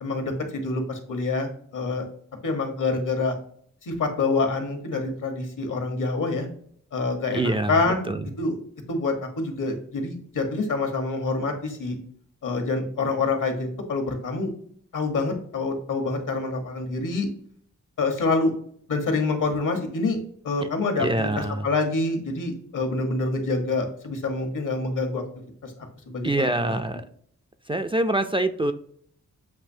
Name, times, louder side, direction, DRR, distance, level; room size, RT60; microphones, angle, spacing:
voice 1, 0.0-2.0 2.4-3.4 3.8-6.5 6.9-8.0 8.4-8.6 8.9-12.0 12.4-14.5 14.9-17.3 18.0-18.5 18.9-20.2 20.4-25.2 25.6-25.7 26.1-26.8, left 3 dB, 70° left, 4 dB, 1.2 m, -26 dB
voice 2, 7.3-7.8 8.1-8.3 21.0-21.7 26.2-27.0 27.7-28.7, right 1 dB, 15° right, 7 dB, 0.3 m, -25 dB
7.4 x 2.7 x 2.7 m, 0.63 s
cardioid pair, 60°, 32 cm